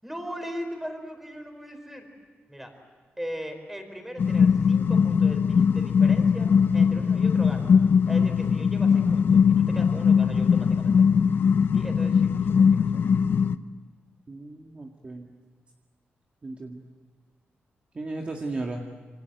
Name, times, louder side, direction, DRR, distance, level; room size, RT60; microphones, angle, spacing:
voice 1, 0.0-2.1 2.5-2.7 3.2-7.7 8.1-11.0 11.7-13.1, equal, 5° right, 5 dB, 4.6 m, -39 dB
sound 1, 4.2-13.6, left 6 dB, 65° left, 0.8 m, -20 dB
voice 2, 14.3-15.3 16.4-16.8 18.0-18.8, right 2 dB, 30° right, 1 dB, 2.0 m, -35 dB
27.5 x 26.0 x 8.0 m, 1.4 s
wide cardioid pair, 145°, 4 cm